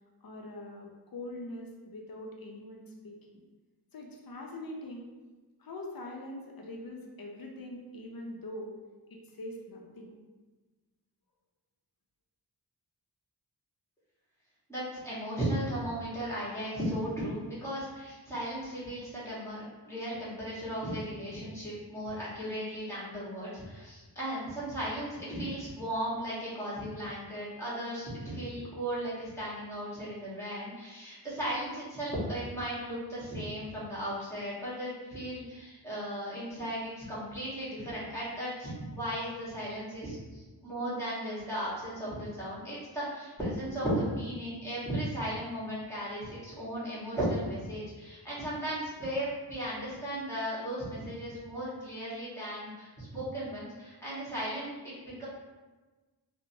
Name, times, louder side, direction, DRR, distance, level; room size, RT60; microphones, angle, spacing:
voice 1, 0.2-3.2 3.9-5.1 5.6-8.8 9.1-10.1, left 1 dB, 55° left, 0 dB, 0.6 m, -43 dB
voice 2, 14.7-55.3, equal, 5° left, -9 dB, 1.4 m, -36 dB
3.6 x 2.2 x 2.7 m, 1.2 s
wide cardioid pair, 80°, 41 cm